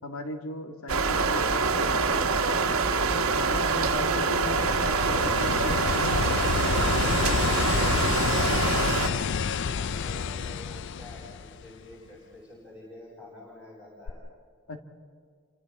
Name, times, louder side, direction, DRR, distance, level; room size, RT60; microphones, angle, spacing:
voice 1, 0.0-2.6 3.0-8.4 14.7-14.8, left 2 dB, 75° left, 4 dB, 2.1 m, -38 dB
sound 1, 0.9-9.1, right 4 dB, 80° right, 1.4 m, -25 dB
sound 2, 3.4-11.9 14.1-14.2, left 6 dB, 60° left, 0.5 m, -29 dB
voice 2, 9.7-14.2, left 1 dB, 20° left, -8 dB, 7.7 m, -48 dB
29.0 x 26.5 x 4.3 m, 2.1 s
head